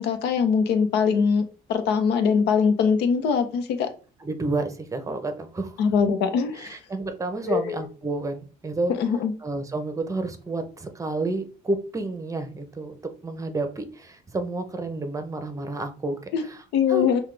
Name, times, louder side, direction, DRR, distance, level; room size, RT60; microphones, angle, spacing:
voice 1, 0.0-1.4 1.7-3.9 5.8-6.8 7.4-7.8 8.9-9.3 16.3-16.4 16.7-17.2, left 6 dB, 85° left, 0.8 m, -22 dB
voice 2, 4.2-5.7 6.5-8.9 9.4-13.0 13.2-16.6 16.9-17.1, right 2 dB, 20° right, 0.8 m, -30 dB
5.8 x 2.4 x 3.3 m
cardioid pair, 110°, 17 cm